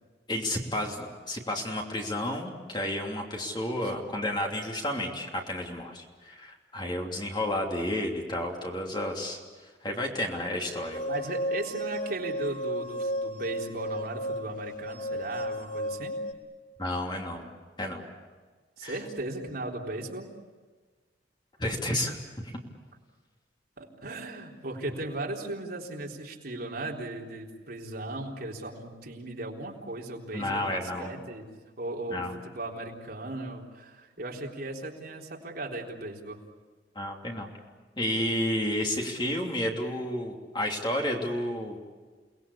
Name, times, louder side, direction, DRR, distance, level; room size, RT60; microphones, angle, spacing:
voice 1, 0.3-9.4 9.8-11.0 16.8-17.5 17.8-18.0 18.8-18.9 21.6-22.2 30.3-31.1 32.1-32.3 36.9-37.5 38.0-41.8, left 1 dB, 25° left, 1 dB, 3.1 m, -31 dB
sound 1, 10.9-16.3, equal, 50° left, 1.7 m, -33 dB
voice 2, 11.1-16.2 18.8-20.3 23.8-31.5 31.8-36.4, right 2 dB, 55° right, -1 dB, 3.7 m, -37 dB
29.5 x 20.0 x 8.6 m, 1.4 s
head